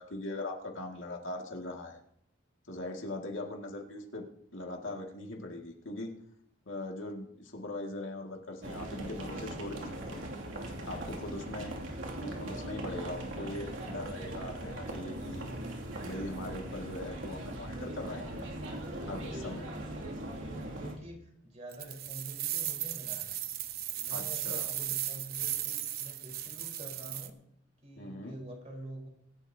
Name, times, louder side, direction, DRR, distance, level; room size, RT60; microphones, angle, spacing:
voice 1, 0.0-2.0 2.7-4.2 4.5-6.1 6.7-10.3 10.8-11.7 12.2-15.5 16.0-18.4 19.0-19.7 24.1-24.7 28.0-28.3, left 2 dB, 70° left, 1 dB, 2.1 m, -40 dB
sound 1, 8.6-21.0, right 1 dB, 75° right, 2.6 m, -40 dB
voice 2, 20.1-23.3 23.9-27.4 27.8-29.1, right 1 dB, 35° right, -1 dB, 4.3 m, -47 dB
sound 2, 21.7-27.3, right 12 dB, 50° right, 0.9 m, -36 dB
24.5 x 11.5 x 2.8 m, 0.73 s
head